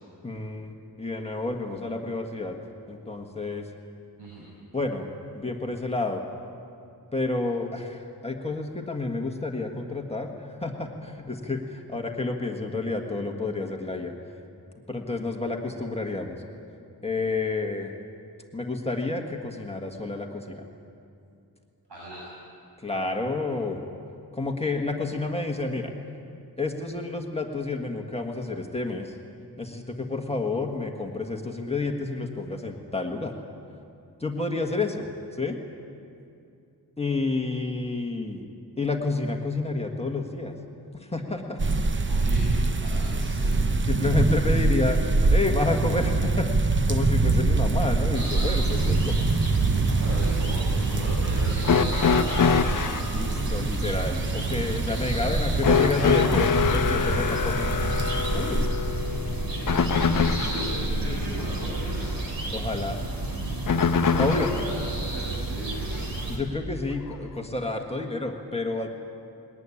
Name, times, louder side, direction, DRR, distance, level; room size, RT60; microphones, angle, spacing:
voice 1, 0.2-2.6 2.9-3.7 4.7-5.1 5.3-6.2 7.1-14.1 14.9-16.4 17.0-17.9 18.5-20.6 22.8-23.8 24.3-25.9 26.6-29.2 29.6-33.3 34.2-35.1 35.3-35.6 37.0-38.4 38.8-40.6 40.9-41.8 43.9-45.0 45.3-49.2 53.1-57.7 58.3-58.7 62.5-63.0 64.2-64.5 66.3-68.9, left 3 dB, 15° left, 2 dB, 1.6 m, -29 dB
voice 2, 21.9-22.3 42.1-42.5 42.8-43.5 50.0-52.9 53.2-53.4 59.3-60.7 61.0-62.2 64.0-66.1, equal, 80° right, -5 dB, 7.1 m, -38 dB
sound 1, 41.6-58.7, right 3 dB, 30° right, 0.8 m, -25 dB
sound 2, 48.1-66.4, right 2 dB, 60° right, 3.3 m, -31 dB
sound 3, 51.6-53.1 55.6-60.7 63.7-64.7 66.0-66.1 67.1-67.2, left 6 dB, 55° left, 0.8 m, -24 dB
21.0 x 18.5 x 9.8 m, 2.6 s
wide cardioid pair, 150°, 39 cm